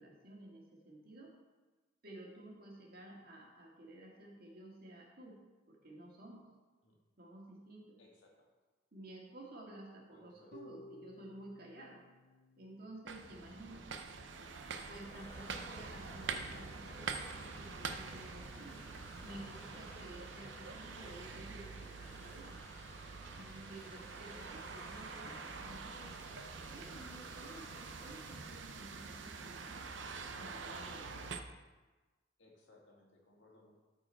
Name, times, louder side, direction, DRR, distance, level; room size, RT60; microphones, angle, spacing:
voice 1, 0.0-1.3 2.0-5.4 5.7-6.5 7.2-8.0 8.9-12.0 12.6-13.8 14.9-18.8 19.2-22.6 23.3-26.1 26.7-29.8 30.4-31.4, right 1 dB, 55° right, -1 dB, 1.9 m, -53 dB
voice 2, 8.0-8.5 10.1-10.6 13.4-13.7 19.8-20.1 24.3-24.6 30.9-31.0 32.4-33.8, left 2 dB, 75° left, -2 dB, 2.1 m, -63 dB
Harp, 10.5-16.6, left 1 dB, 50° left, 0.6 m, -60 dB
sound 1, 13.1-31.4, right 4 dB, 75° right, 0.6 m, -46 dB
sound 2, 15.0-28.4, left 1 dB, 15° left, 1.2 m, -58 dB
13.0 x 4.6 x 4.4 m, 1.2 s
head